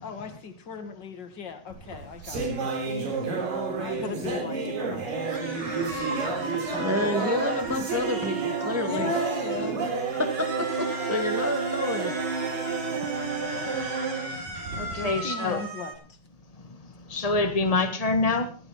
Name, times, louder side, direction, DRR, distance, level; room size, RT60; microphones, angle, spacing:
voice 1, 0.0-5.4 8.9-10.1 11.8-12.1 13.0-13.7 15.0-15.9, left 5 dB, 40° left, 8 dB, 2.1 m, -38 dB
sound 1, 1.7-15.2, right 4 dB, 85° right, 5.7 m, -30 dB
sound 2, 5.2-9.7 10.2-15.9, right 2 dB, 30° right, 3.7 m, -37 dB
voice 2, 6.8-9.1 9.6-9.7 10.1-10.3 10.6-12.1, left 1 dB, 5° right, 5 dB, 1.4 m, -29 dB
voice 3, 14.8-15.6 17.1-18.5, left 3 dB, 70° left, 7 dB, 0.3 m, -25 dB
16.5 x 15.5 x 4.3 m, 0.37 s
omnidirectional pair, 3.8 m